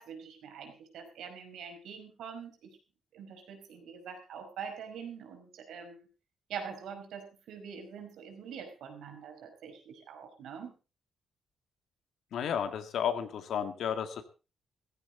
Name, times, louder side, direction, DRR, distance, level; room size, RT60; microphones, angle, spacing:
voice 1, 0.0-2.7 3.1-6.1 6.5-10.7, right 7 dB, 85° right, 5 dB, 5.2 m, -44 dB
voice 2, 12.3-14.2, left 8 dB, 75° left, 9 dB, 2.2 m, -32 dB
16.0 x 15.0 x 4.1 m, 0.33 s
cardioid pair, 115°, 0 cm